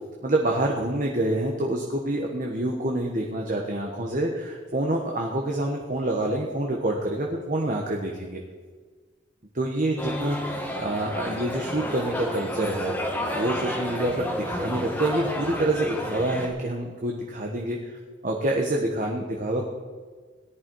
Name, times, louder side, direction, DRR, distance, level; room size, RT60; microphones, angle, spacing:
voice 1, 0.2-8.4 9.5-18.0 18.2-19.7, right 1 dB, 40° right, 0 dB, 1.3 m, -27 dB
sound 1, 10.0-16.5, equal, 10° left, 1.7 m, -31 dB
18.0 x 11.0 x 4.7 m, 1.5 s
head